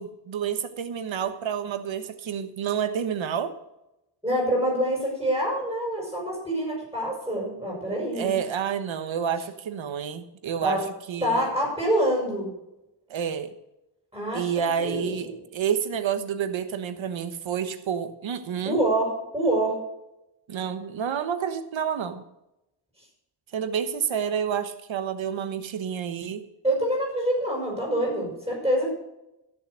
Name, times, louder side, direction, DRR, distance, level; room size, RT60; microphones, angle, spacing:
voice 1, 0.0-3.5 8.1-11.4 13.1-13.5 14.3-18.8 20.5-22.2 23.5-26.4, right 8 dB, 80° right, 10 dB, 1.3 m, -29 dB
voice 2, 4.2-8.4 10.6-10.8 11.2-12.5 14.1-15.4 18.6-19.8 26.6-28.9, right 1 dB, 5° right, -3 dB, 5.1 m, -26 dB
14.0 x 6.8 x 6.4 m, 0.91 s
wide cardioid pair, 155°, 46 cm